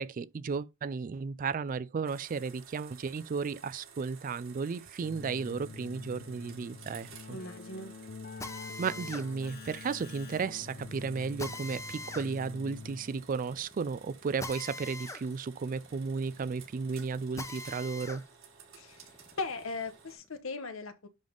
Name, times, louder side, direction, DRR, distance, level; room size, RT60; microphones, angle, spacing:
voice 1, 0.0-7.4 8.8-18.2, right 5 dB, 40° right, 0.3 m, -34 dB
sound 1, 2.0-20.2, right 6 dB, 85° right, 3.8 m, -54 dB
Keyboard (musical), 5.0-13.4, left 4 dB, 50° left, 0.7 m, -47 dB
voice 2, 7.3-7.9 18.7-21.1, left 3 dB, 75° left, 1.1 m, -39 dB
Drill, 8.4-18.2 18.7-20.3, left 2 dB, 15° left, 0.9 m, -45 dB
10.5 x 3.6 x 3.8 m
head